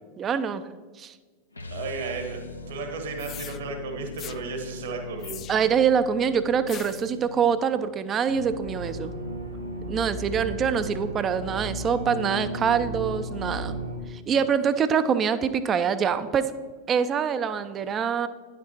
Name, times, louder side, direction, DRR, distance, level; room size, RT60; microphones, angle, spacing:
voice 1, 0.2-0.6 1.0-1.1 5.5-9.1 9.9-13.8 14.1-16.5 16.9-18.3, right 7 dB, 25° right, 12 dB, 0.5 m, -25 dB
sound 1, 1.5-7.6, left 3 dB, 80° left, 0.7 m, -41 dB
voice 2, 1.7-2.4 2.7-5.4, right 4 dB, 55° right, 4 dB, 1.4 m, -34 dB
sound 2, 3.2-3.6 4.2-4.4 5.2-5.8 6.7-7.1, left 11 dB, 30° left, 0.4 m, -41 dB
sound 3, 8.3-14.0, right 1 dB, 85° right, 2.1 m, -34 dB
10.5 x 6.0 x 4.4 m, 1.4 s
figure-of-eight pair, 90°, 0 cm